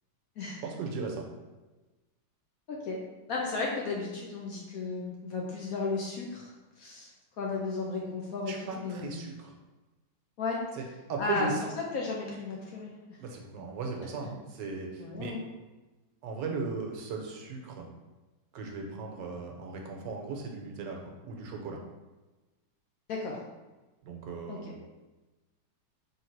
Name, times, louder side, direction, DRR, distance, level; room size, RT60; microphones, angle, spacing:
voice 1, 0.6-1.3 8.5-9.5 10.7-10.8 11.1-11.6 13.2-15.4 16.2-17.9 18.5-21.8 24.0-24.8, right 4 dB, 75° right, 1 dB, 1.3 m, -37 dB
voice 2, 2.7-3.0 3.3-6.5 6.8-7.1 7.4-9.1 10.4-10.6 11.2-11.5 11.9-13.2 15.0-15.4 23.1-23.4 24.5-24.6, left 4 dB, 65° left, -2 dB, 0.9 m, -34 dB
3.7 x 3.2 x 4.4 m, 1.2 s
omnidirectional pair, 2.0 m